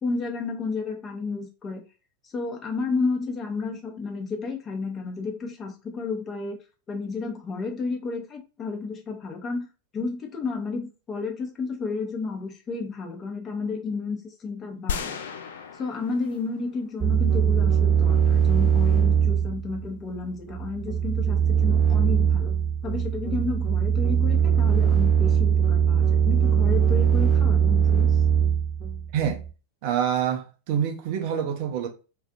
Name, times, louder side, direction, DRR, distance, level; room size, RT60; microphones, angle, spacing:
voice 1, 0.0-1.8 2.3-6.6 6.9-9.6 9.9-15.2 15.8-22.5 22.8-28.1, left 4 dB, 25° left, 0.6 m, -31 dB
sound 1, 14.9-17.2, left 8 dB, 60° left, 0.3 m, -34 dB
sound 2, 17.0-29.5, right 8 dB, 15° right, 0.9 m, -21 dB
voice 2, 29.8-31.9, right 9 dB, 45° right, 0.5 m, -26 dB
2.5 x 2.4 x 2.3 m
figure-of-eight pair, 90°, 0 cm